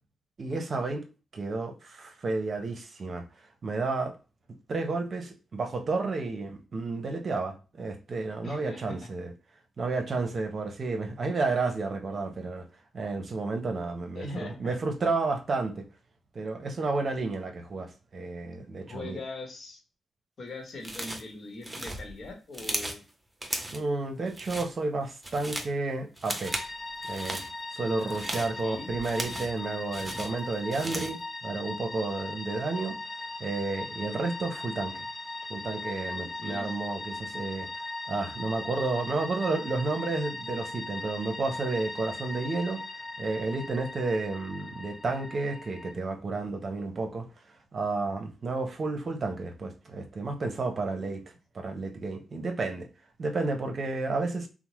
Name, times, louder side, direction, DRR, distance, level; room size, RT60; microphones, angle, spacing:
voice 1, 0.4-1.0 1.3-3.2 3.6-4.1 4.7-9.3 9.8-12.7 12.9-15.9 16.3-19.2 23.7-26.6 27.1-27.4 27.7-33.0 33.4-35.0 35.5-42.8 43.2-47.3 47.7-51.2 51.5-52.9 53.2-54.5, right 3 dB, 55° right, 0.6 m, -31 dB
voice 2, 8.4-9.0 14.1-14.8 18.8-19.8 20.4-23.0 28.3-28.9 36.1-36.7, left 2 dB, 60° left, 1.0 m, -41 dB
sound 1, 20.8-21.3 21.6-23.0 23.4-23.9 24.3-24.7 25.1-25.8 26.2-26.7 27.0-27.5 28.0-29.6 29.9-31.2, right 1 dB, 20° right, 0.7 m, -36 dB
sound 2, 26.5-45.9, left 2 dB, 30° left, 0.5 m, -39 dB
2.7 x 2.0 x 3.1 m
supercardioid pair, 55°, 0 cm